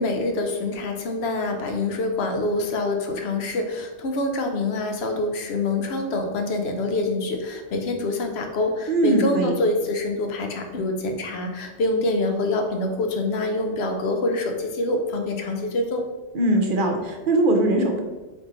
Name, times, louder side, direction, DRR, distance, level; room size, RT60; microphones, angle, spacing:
voice 1, 0.0-16.0, left 2 dB, 70° left, 4 dB, 0.9 m, -25 dB
voice 2, 8.9-9.5 16.3-18.0, right 1 dB, 55° right, 2 dB, 0.8 m, -21 dB
3.6 x 3.2 x 3.7 m, 1.2 s
omnidirectional pair, 1.1 m